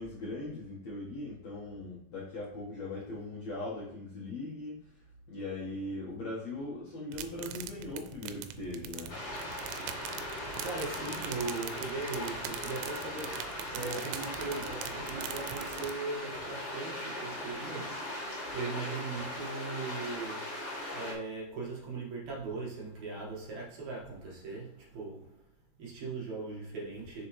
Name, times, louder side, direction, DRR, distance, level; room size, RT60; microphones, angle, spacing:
voice 1, 0.0-4.8 5.3-9.1 15.2-15.3, left 2 dB, 75° left, 1.5 m, -40 dB
sound 1, 7.1-15.9, right 10 dB, 85° right, 2.9 m, -43 dB
sound 2, 9.1-21.1, left 1 dB, 45° left, 1.8 m, -39 dB
voice 2, 9.9-20.7 20.9-25.5 25.8-27.3, right 3 dB, 60° right, 1.9 m, -39 dB
6.7 x 6.4 x 3.2 m
omnidirectional pair, 5.4 m